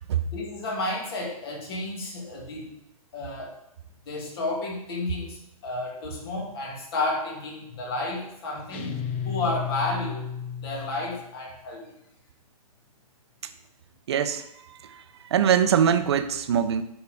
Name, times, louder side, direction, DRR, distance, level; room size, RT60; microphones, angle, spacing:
voice 1, 0.2-2.7 3.1-3.5 4.1-8.9 9.3-10.3 10.6-11.8, left 2 dB, 40° left, -1 dB, 2.4 m, -31 dB
sound 1, 8.7-11.3, left 8 dB, 20° left, 0.3 m, -33 dB
voice 2, 14.1-14.4 14.8-15.0 15.3-16.8, right 8 dB, 45° right, 10 dB, 0.7 m, -22 dB
11.5 x 5.6 x 3.5 m, 0.81 s
hypercardioid pair, 165°, 19 cm